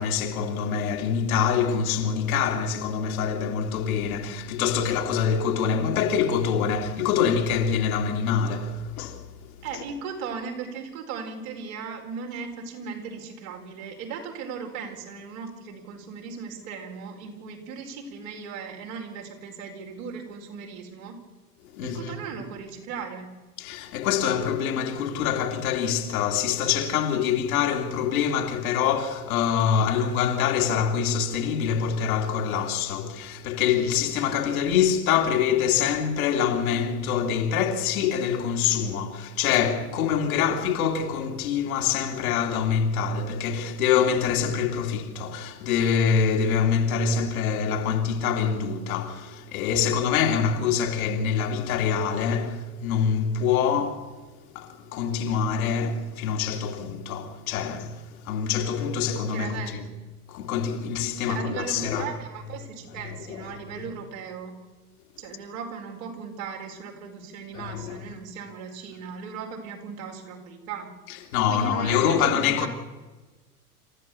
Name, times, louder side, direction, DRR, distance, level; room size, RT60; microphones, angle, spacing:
voice 1, 0.0-9.2 21.7-22.2 23.6-54.1 54.5-59.8 60.3-62.1 63.0-63.5 67.5-68.0 71.1-72.7, left 7 dB, 65° left, 2.9 m, -25 dB
voice 2, 9.6-21.2 21.8-23.3 59.3-59.8 61.2-64.5 65.2-70.9 71.5-72.7, right 6 dB, 60° right, 4.8 m, -37 dB
27.0 x 14.5 x 7.0 m
hypercardioid pair, 95°, 46 cm